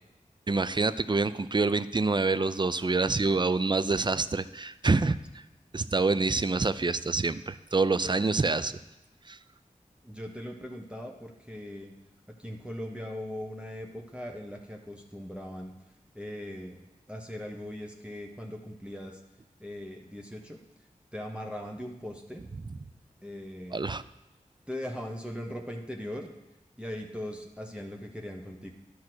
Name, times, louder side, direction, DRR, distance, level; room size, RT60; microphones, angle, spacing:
voice 1, 0.5-5.2 5.7-8.8 9.3-9.4 23.7-24.0, right 3 dB, 35° right, 14 dB, 0.5 m, -26 dB
voice 2, 10.0-11.9 12.4-15.7 16.1-19.2 19.6-20.6 21.1-22.4 23.2-23.8 24.7-26.3 26.8-28.7, equal, 5° right, 1 dB, 1.2 m, -39 dB
10.5 x 6.3 x 6.2 m, 1.0 s
cardioid pair, 45°, 14 cm